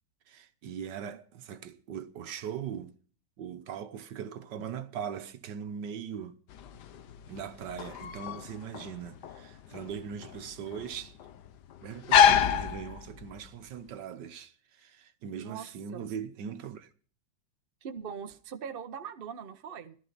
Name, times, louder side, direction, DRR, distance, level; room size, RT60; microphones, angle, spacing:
voice 1, 0.3-2.9 3.4-6.4 7.3-11.2 11.8-16.9, right 8 dB, 75° right, 1.6 m, -40 dB
voice 2, 0.8-1.2 15.3-15.7 15.9-16.1 17.8-19.9, right 7 dB, 40° right, 0.8 m, -41 dB
sound 1, 6.5-13.5, left 8 dB, 70° left, 1.4 m, -27 dB
14.0 x 12.5 x 4.1 m
omnidirectional pair, 1.9 m